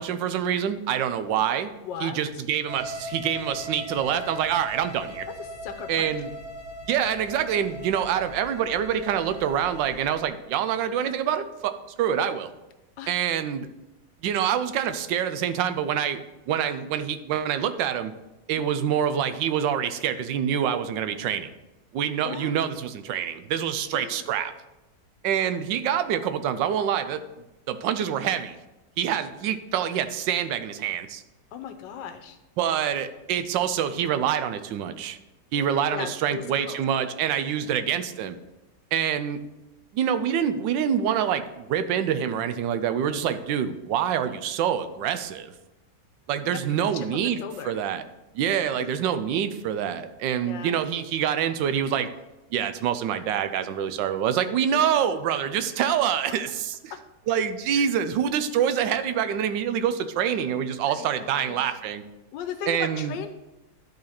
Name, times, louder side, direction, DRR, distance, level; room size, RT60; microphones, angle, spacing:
voice 1, 0.0-1.7 2.0-5.3 5.9-6.3 6.9-12.5 13.1-13.7 14.2-16.2 16.5-18.1 18.5-21.5 21.9-24.5 25.2-27.2 27.7-28.6 29.0-31.2 32.6-35.2 35.5-38.3 38.9-39.4 39.9-45.5 46.3-47.4 47.6-48.0 48.3-52.1 52.5-56.7 57.3-62.0 62.7-63.1, right 9 dB, 80° right, 11 dB, 1.3 m, -26 dB
voice 2, 1.8-2.2 5.4-6.1 13.0-13.1 18.5-18.7 22.2-22.6 23.9-24.3 31.5-32.4 35.5-36.8 46.4-46.6 46.9-47.8 48.8-48.9 50.4-50.8 54.7-55.2 55.7-55.8 56.9-57.0 57.7-57.9 60.9-61.6 62.3-63.3, left 8 dB, 80° left, 8 dB, 1.4 m, -38 dB
sound 1, 2.7-10.2, equal, 60° right, 2.1 m, -39 dB
11.5 x 4.0 x 4.2 m, 1.0 s
omnidirectional pair, 2.0 m